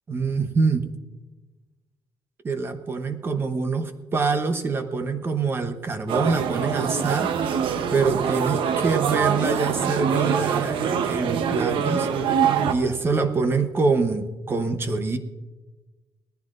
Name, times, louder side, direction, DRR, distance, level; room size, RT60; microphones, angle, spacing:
voice 1, 0.1-0.9 2.4-7.6 7.9-12.1 12.7-15.2, right 4 dB, 25° right, 8 dB, 0.9 m, -25 dB
sound 1, 6.1-12.7, right 7 dB, 75° right, 0.9 m, -24 dB
19.0 x 14.5 x 2.5 m, 1.2 s
cardioid pair, 175°, 9 cm